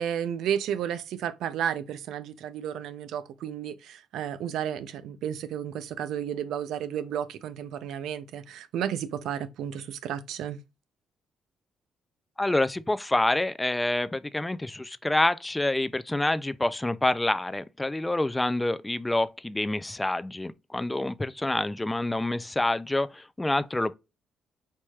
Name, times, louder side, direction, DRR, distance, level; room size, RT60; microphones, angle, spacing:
voice 1, 0.0-10.6, right 9 dB, 80° right, 0.4 m, -32 dB
voice 2, 12.4-23.9, left 2 dB, 15° left, 0.3 m, -27 dB
4.6 x 2.9 x 2.3 m
cardioid pair, 90°, 0 cm